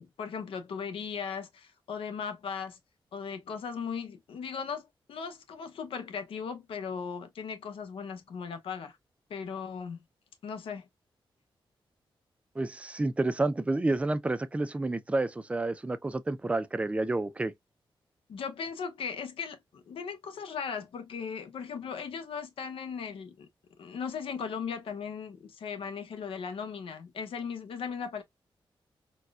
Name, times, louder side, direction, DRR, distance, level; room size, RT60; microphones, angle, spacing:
voice 1, 0.0-2.8 3.1-9.0 9.3-10.0 10.4-10.9 18.3-23.5 23.8-28.2, left 6 dB, 85° left, 0.8 m, -37 dB
voice 2, 12.6-17.5, right 2 dB, 15° right, 0.4 m, -29 dB
4.1 x 2.2 x 2.3 m
wide cardioid pair, 105°, 9 cm